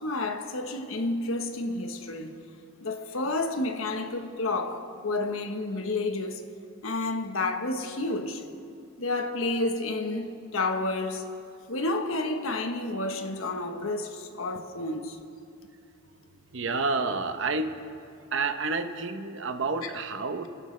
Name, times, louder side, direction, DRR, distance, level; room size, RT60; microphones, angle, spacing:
voice 1, 0.0-2.4 2.8-6.5 6.8-8.4 9.0-11.3 11.7-15.2 19.8-19.9, left 2 dB, 75° left, 1.2 m, -30 dB
voice 2, 16.3-17.7 18.3-20.5, right 3 dB, 60° right, 0.9 m, -29 dB
30.0 x 12.0 x 3.3 m
head